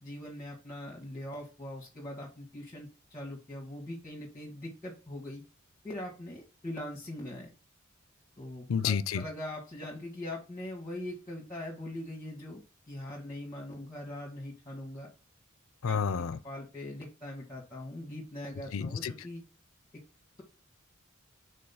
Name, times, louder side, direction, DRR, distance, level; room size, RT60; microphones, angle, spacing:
voice 1, 0.0-5.4 5.8-7.5 8.4-15.1 15.8-16.0 16.4-19.4, left 1 dB, 15° left, 1.6 m, -41 dB
voice 2, 8.7-9.2 15.8-16.4 18.7-19.1, left 6 dB, 75° left, 0.5 m, -30 dB
5.4 x 3.7 x 5.7 m
head